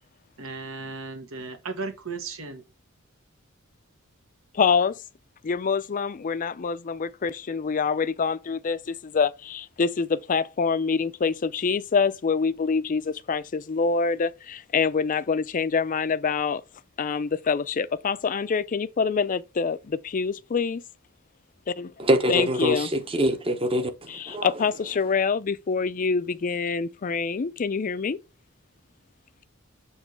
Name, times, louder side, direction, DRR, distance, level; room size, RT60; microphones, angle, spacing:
voice 1, 0.4-2.6, right 4 dB, 75° right, 1.2 m, -35 dB
voice 2, 4.5-5.0 5.4-16.6 17.0-20.8 21.8-21.9 22.3-22.9 24.1-28.2, left 5 dB, 40° left, 0.4 m, -26 dB
voice 3, 22.0-24.5, equal, 25° right, 0.9 m, -24 dB
7.3 x 3.1 x 4.6 m
head